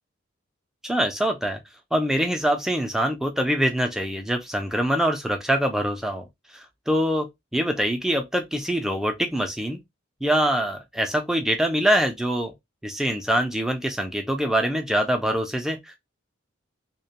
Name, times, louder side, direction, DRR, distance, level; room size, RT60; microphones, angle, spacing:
voice 1, 0.8-1.6 1.9-6.3 6.5-9.8 10.2-12.5 12.8-16.0, equal, ahead, 0.4 m, -24 dB
2.3 x 2.2 x 2.8 m
head